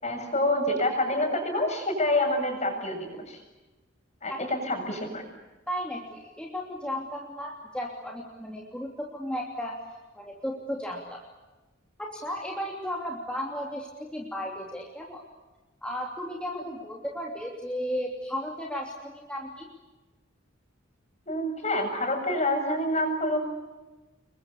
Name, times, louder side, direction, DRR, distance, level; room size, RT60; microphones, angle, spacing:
voice 1, 0.0-3.4 4.2-5.2 16.6-16.7 21.3-23.4, left 1 dB, 35° left, 4 dB, 7.5 m, -27 dB
voice 2, 5.7-9.8 10.1-11.2 12.0-15.2 15.8-19.7, equal, 5° left, -1 dB, 3.0 m, -34 dB
29.5 x 22.5 x 8.5 m, 1.2 s
head